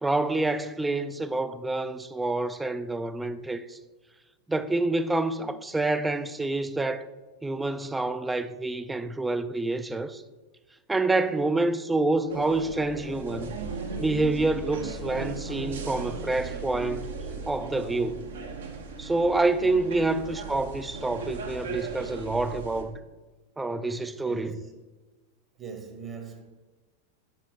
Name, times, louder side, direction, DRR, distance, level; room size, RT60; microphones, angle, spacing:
voice 1, 0.0-3.8 4.5-7.1 7.4-10.2 10.9-13.6 14.0-17.1 17.5-18.3 19.0-23.0 23.6-24.6, right 2 dB, 10° right, 0.3 m, -27 dB
sound 1, 12.3-22.8, right 4 dB, 65° right, 0.9 m, -37 dB
voice 2, 24.2-24.7 25.6-26.4, right 5 dB, 25° right, 1.0 m, -41 dB
6.0 x 5.8 x 4.7 m
figure-of-eight pair, 90°, 0 cm